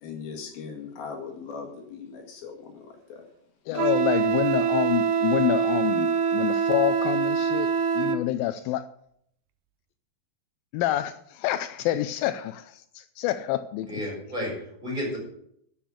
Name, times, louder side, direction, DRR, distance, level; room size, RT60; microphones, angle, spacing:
voice 1, 0.0-3.2 3.7-3.8, left 5 dB, 65° left, 3.6 m, -39 dB
voice 2, 3.7-7.7 7.9-8.9 10.7-13.9, left 13 dB, 85° left, 2.0 m, -27 dB
Wind instrument woodwind instrument, 3.8-8.2, right 6 dB, 80° right, 2.9 m, -24 dB
voice 3, 13.9-15.2, left 1 dB, 10° right, 6.6 m, -32 dB
11.5 x 8.2 x 8.6 m
omnidirectional pair, 4.8 m